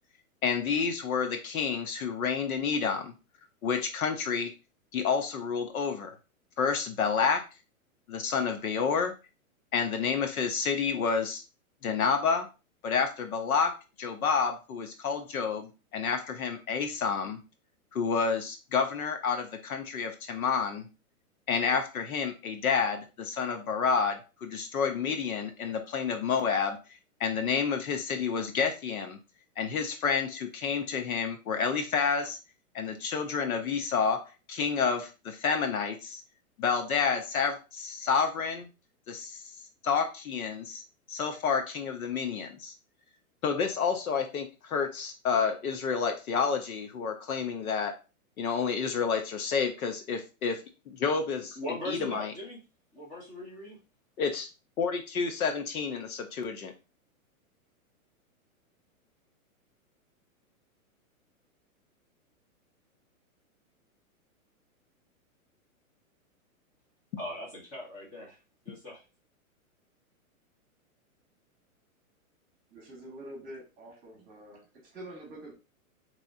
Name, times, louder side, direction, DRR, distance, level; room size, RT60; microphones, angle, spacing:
voice 1, 0.4-3.1 3.6-4.5 4.9-6.1 6.6-7.4 8.1-9.1 9.7-11.4 11.8-12.5 12.8-13.7 14.0-17.4 17.9-20.9 21.5-26.8 27.2-29.2 29.6-32.4 32.7-34.2 34.5-36.2 36.6-38.7 39.1-39.4 39.8-40.8 41.1-42.7 43.4-47.9 48.4-51.5 51.9-52.3 54.2-54.5 54.8-56.7, left 6 dB, 75° left, 6 dB, 1.0 m, -29 dB
voice 2, 51.5-52.6 52.9-53.8 67.2-68.4 68.6-69.0, left 1 dB, 20° left, -3 dB, 1.3 m, -39 dB
voice 3, 72.7-75.5, right 1 dB, 20° right, -1 dB, 1.6 m, -46 dB
4.1 x 3.3 x 2.7 m, 0.30 s
hypercardioid pair, 160°, 43 cm